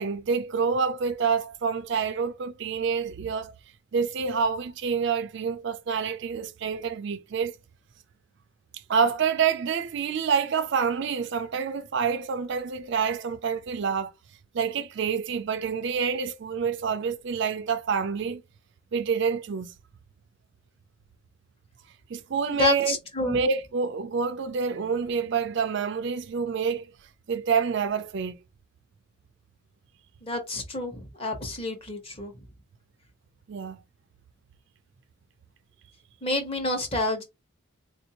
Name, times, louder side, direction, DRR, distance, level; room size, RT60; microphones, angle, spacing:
voice 1, 0.0-3.5 3.9-7.5 8.9-14.1 14.5-18.4 18.9-19.7 22.1-26.9 27.3-28.4 33.5-33.8, right 6 dB, 55° right, 0.4 m, -27 dB
voice 2, 22.6-23.4 30.2-32.3 36.2-37.2, left 2 dB, 25° left, 1.0 m, -28 dB
3.8 x 2.6 x 2.8 m
head